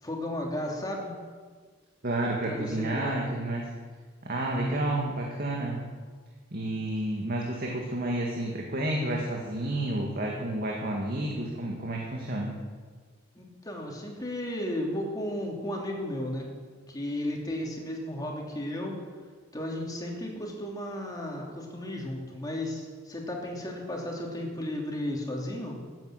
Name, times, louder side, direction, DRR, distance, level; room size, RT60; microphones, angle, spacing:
voice 1, 0.0-1.1 2.4-3.2 4.6-4.9 13.3-16.5 16.9-19.0 19.5-25.8, left 1 dB, 20° left, -1 dB, 3.0 m, -34 dB
voice 2, 2.0-3.7 4.2-5.8 6.5-12.5, right 1 dB, 50° right, -1 dB, 2.0 m, -30 dB
15.0 x 9.2 x 8.2 m, 1.5 s
head